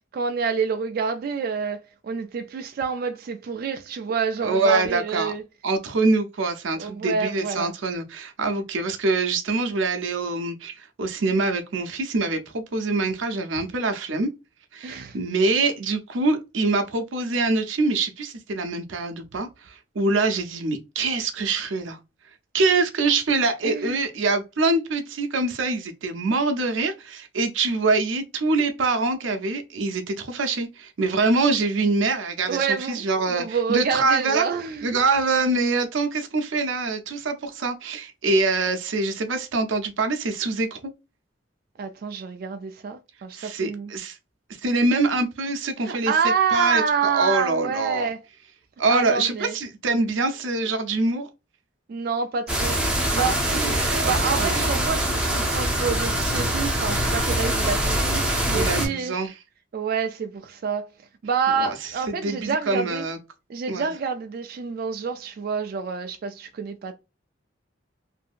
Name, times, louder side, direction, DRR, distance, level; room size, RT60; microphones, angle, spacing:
voice 1, 0.1-5.4 6.8-7.7 14.8-15.2 23.6-24.0 32.5-35.0 41.8-43.9 45.8-48.2 48.9-49.5 51.9-52.8 53.1-53.4 54.0-59.1 59.7-60.9 61.2-63.0 63.5-66.9, right 5 dB, 50° right, 0.3 m, -27 dB
voice 2, 4.4-5.3 5.6-14.3 14.7-22.0 22.5-34.4 34.8-40.9 43.3-44.2 44.6-46.1 46.5-48.1 48.8-51.3 53.1-54.7 58.5-59.3 61.6-63.2 63.7-63.9, right 3 dB, 90° right, 0.6 m, -24 dB
sound 1, 52.5-58.9, right 1 dB, 5° right, 0.6 m, -24 dB
2.7 x 2.6 x 2.4 m
head